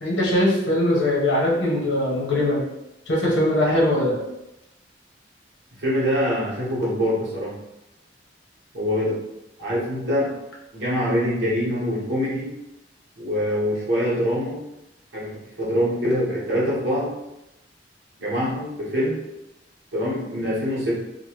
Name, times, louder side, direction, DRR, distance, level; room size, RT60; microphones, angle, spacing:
voice 1, 0.0-2.6 3.1-4.2, left 1 dB, 85° left, -4 dB, 0.9 m, -21 dB
voice 2, 5.8-7.6 8.7-9.2 9.6-10.3 10.7-12.5 13.2-14.6 15.1-17.1 18.2-19.2 19.9-21.0, equal, 75° right, -7 dB, 1.1 m, -24 dB
3.0 x 2.2 x 3.0 m, 0.91 s
head